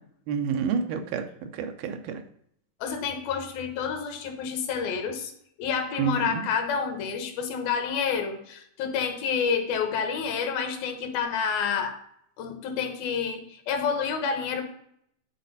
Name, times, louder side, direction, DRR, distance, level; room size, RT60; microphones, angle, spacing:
voice 1, 0.3-1.3 1.5-2.2 6.0-6.5, right 6 dB, 90° right, 7 dB, 2.7 m, -28 dB
voice 2, 2.8-5.3 5.6-12.0 12.4-14.6, left 6 dB, 80° left, 5 dB, 2.9 m, -29 dB
11.0 x 4.2 x 4.0 m, 0.69 s
omnidirectional pair, 4.2 m